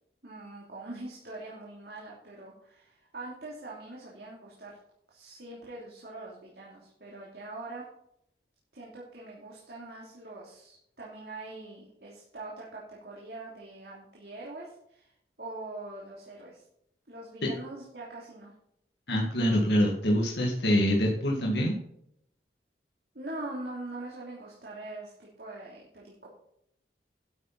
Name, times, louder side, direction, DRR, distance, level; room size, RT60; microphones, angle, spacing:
voice 1, 0.2-4.8 5.1-7.8 8.7-15.1 15.4-16.6 17.1-18.5 23.1-26.3, right 2 dB, 65° right, -5 dB, 3.1 m, -43 dB
voice 2, 19.1-21.8, equal, 80° left, -2 dB, 2.2 m, -25 dB
12.0 x 8.6 x 4.1 m, 0.75 s
head